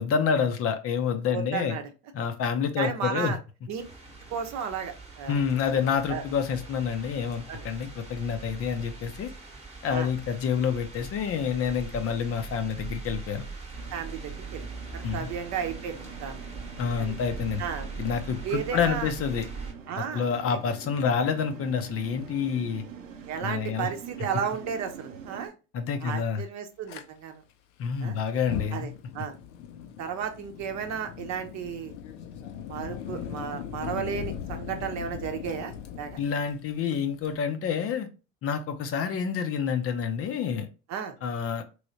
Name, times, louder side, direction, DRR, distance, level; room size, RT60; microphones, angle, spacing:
voice 1, 0.0-1.8 2.1-3.3 5.3-9.3 9.8-13.5 15.0-15.3 16.8-17.6 18.0-19.5 20.1-22.8 23.4-23.9 25.7-26.4 27.8-28.9 36.2-38.1 38.4-40.7 41.2-41.6, left 7 dB, 35° left, 8 dB, 0.6 m, -28 dB
voice 2, 1.3-1.9 2.8-3.4 3.7-3.8 4.3-5.8 6.1-6.2 7.5-7.7 9.9-10.1 13.9-14.6 14.9-16.4 17.0-17.1 17.6-17.8 18.4-19.1 19.9-20.3 20.6-20.7 23.3-25.5 26.0-27.4 28.0-28.2 28.7-29.4 30.0-31.9 32.7-36.2 40.9-41.2, right 7 dB, 45° right, 6 dB, 0.8 m, -33 dB
sound 1, 3.8-19.7, right 4 dB, 15° right, 1.1 m, -42 dB
sound 2, 13.7-25.5, right 6 dB, 90° right, 0.7 m, -44 dB
Fire, 26.9-27.0 28.3-37.4, left 9 dB, 70° left, 0.7 m, -39 dB
3.2 x 3.1 x 2.7 m, 0.32 s
hypercardioid pair, 80°, 38 cm